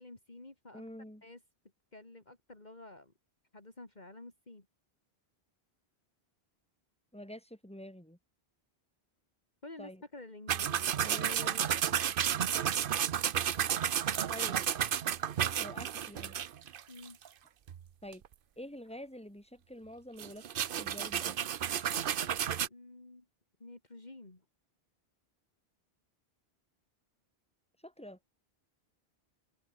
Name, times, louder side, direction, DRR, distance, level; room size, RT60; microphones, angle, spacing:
voice 1, 0.0-0.8 1.2-1.4 1.9-3.1 3.5-4.7 9.6-11.8 16.9-17.2 22.7-23.3 23.6-24.4, left 2 dB, 45° left, 3.0 m, -50 dB
voice 2, 0.7-1.2 7.1-8.2 9.8-10.0 11.0-11.6 14.3-14.7 15.6-16.4 18.0-18.2 18.6-20.5 20.8-21.4 27.8-28.2, equal, 5° left, 5.1 m, -47 dB
sound 1, 10.5-17.3 17.7-17.8 18.1-18.3 20.2-22.7, right 9 dB, 60° right, 0.9 m, -32 dB
open air
omnidirectional pair, 1.1 m